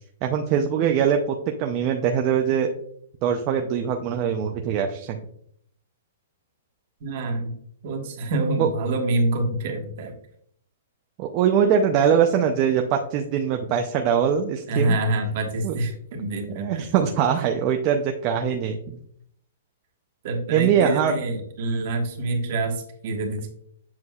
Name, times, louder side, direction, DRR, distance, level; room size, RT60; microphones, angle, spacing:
voice 1, 0.2-2.7 3.2-5.2 8.6-8.7 11.2-15.0 15.6-15.7 16.6-19.0 20.5-21.2, right 8 dB, 30° right, 3 dB, 0.5 m, -22 dB
voice 2, 7.0-7.5 7.8-10.1 14.7-17.1 20.2-23.5, right 2 dB, 45° right, 3 dB, 1.4 m, -26 dB
7.6 x 6.1 x 2.3 m, 0.67 s
hypercardioid pair, 165°, 0 cm